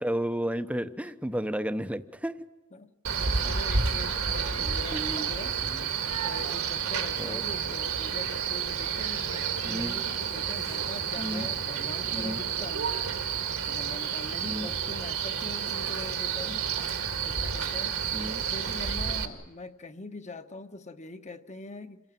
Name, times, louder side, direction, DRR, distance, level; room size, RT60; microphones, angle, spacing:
voice 1, 0.0-2.3 4.9-5.3 5.7-5.9 7.2-7.4 9.6-9.9 11.2-11.5 12.1-12.4 14.4-14.7 16.5-16.6 18.1-18.4, equal, 5° right, 11 dB, 0.9 m, -32 dB
voice 2, 2.7-5.6 6.2-12.9 13.6-16.6 17.1-18.0 18.5-22.0, left 3 dB, 35° left, 8 dB, 1.3 m, -43 dB
Male speech man speaking, 3.0-19.2, right 6 dB, 70° right, 2.2 m, -30 dB
27.5 x 18.0 x 9.2 m, 1.1 s
head